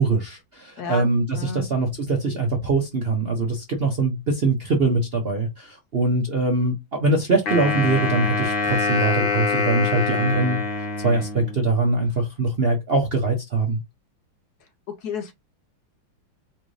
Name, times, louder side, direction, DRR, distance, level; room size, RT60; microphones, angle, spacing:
voice 1, 0.0-10.6 11.0-13.8, right 3 dB, 50° right, 0.7 m, -22 dB
voice 2, 1.3-1.7 15.0-15.3, left 5 dB, 65° left, 1.1 m, -30 dB
Wind instrument woodwind instrument, 7.5-11.7, left 4 dB, 85° left, 2.1 m, -25 dB
4.5 x 2.6 x 3.1 m
omnidirectional pair, 2.1 m